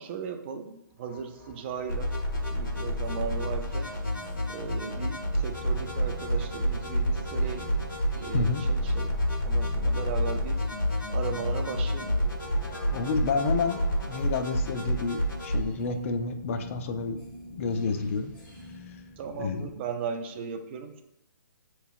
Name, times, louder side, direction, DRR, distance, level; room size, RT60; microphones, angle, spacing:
voice 1, 0.0-2.1 2.5-3.9 4.5-7.7 8.2-9.2 9.4-10.6 11.1-12.2 19.2-21.0, right 6 dB, 30° right, 7 dB, 0.5 m, -37 dB
sound 1, 0.9-19.7, left 1 dB, 10° left, 1.2 m, -47 dB
sound 2, 1.9-15.6, equal, 85° left, 1.4 m, -29 dB
voice 2, 12.9-17.2 17.6-18.3 19.4-19.7, left 4 dB, 40° left, 7 dB, 0.4 m, -29 dB
6.5 x 3.1 x 2.5 m, 0.83 s
figure-of-eight pair, 140°, 11 cm